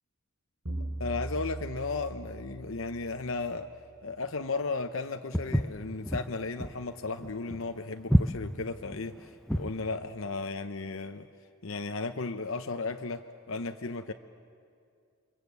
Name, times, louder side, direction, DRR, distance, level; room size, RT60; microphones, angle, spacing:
sound 1, 0.7-3.4, right 2 dB, 75° right, 6.6 m, -39 dB
voice 1, 1.0-3.7 4.0-11.3 11.6-14.1, left 3 dB, 65° left, 7 dB, 0.8 m, -35 dB
Walk footsteps, 5.3-9.8, equal, 5° left, 0.6 m, -28 dB
29.0 x 24.5 x 8.2 m, 2.3 s
head